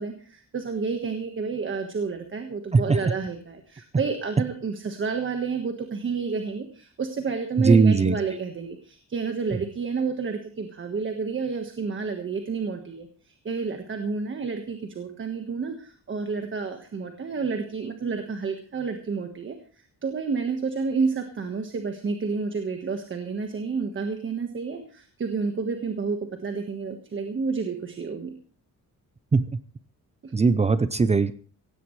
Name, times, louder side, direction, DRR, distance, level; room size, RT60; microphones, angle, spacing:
voice 1, 0.0-28.3 30.2-30.3, right 5 dB, 35° right, 5 dB, 1.4 m, -30 dB
voice 2, 2.7-3.1 7.6-8.4 9.5-9.6 29.3-29.5 30.3-31.3, right 4 dB, 20° right, 13 dB, 0.6 m, -20 dB
17.0 x 16.0 x 3.2 m, 0.41 s
wide cardioid pair, 180°, 33 cm